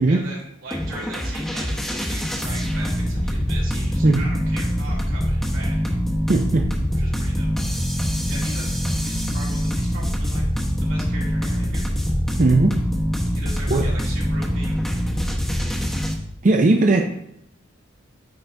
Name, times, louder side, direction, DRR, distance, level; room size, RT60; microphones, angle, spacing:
voice 1, 0.0-6.0 6.9-7.5 8.3-10.4 10.9-11.9 13.3-14.8, right 2 dB, 85° right, -5 dB, 2.5 m, -39 dB
sound 1, 0.7-16.2, equal, ahead, 0.8 m, -24 dB
voice 2, 6.3-6.7 12.4-12.7 13.7-13.9 16.4-17.0, right 2 dB, 40° right, 2 dB, 0.5 m, -17 dB
8.9 x 3.9 x 3.4 m, 0.75 s
head